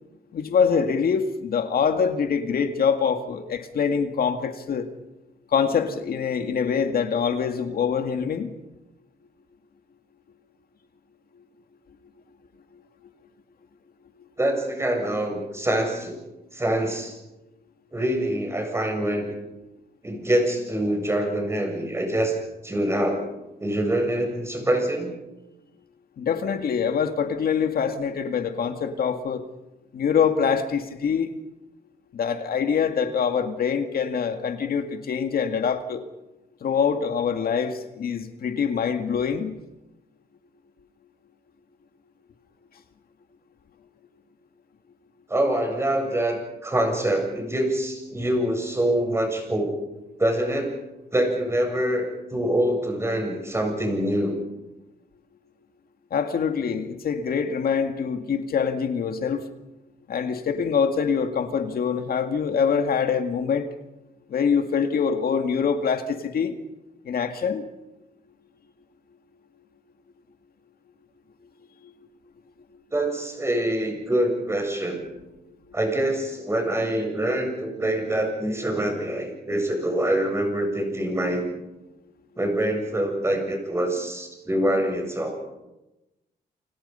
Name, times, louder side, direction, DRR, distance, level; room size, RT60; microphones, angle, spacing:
voice 1, 0.3-4.9 5.5-8.5 26.2-29.4 29.9-31.3 32.1-36.0 36.6-39.5 56.1-59.4 60.1-63.7 64.3-66.6 67.1-67.6, left 6 dB, 65° left, 7 dB, 2.0 m, -24 dB
voice 2, 14.4-16.1 16.5-17.1 17.9-19.3 20.0-22.3 22.6-23.2 23.6-25.1 45.3-49.7 50.2-50.7 51.1-54.4 72.9-75.1 75.7-81.5 82.4-85.4, right 1 dB, 15° right, 3 dB, 7.8 m, -25 dB
29.0 x 27.0 x 5.6 m, 0.98 s
cardioid pair, 120°, 17 cm